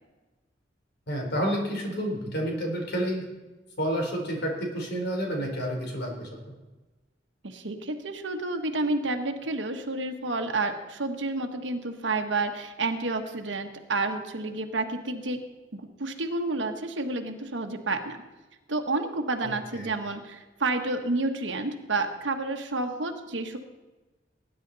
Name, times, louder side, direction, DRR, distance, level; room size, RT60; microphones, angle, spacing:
voice 1, 1.1-3.2 3.8-6.3 19.4-19.5 19.8-19.9, equal, 65° left, 0 dB, 3.8 m, -29 dB
voice 2, 7.4-15.4 15.7-18.2 18.7-23.6, right 2 dB, 85° right, 4 dB, 1.3 m, -30 dB
19.0 x 10.0 x 4.0 m, 1.2 s
head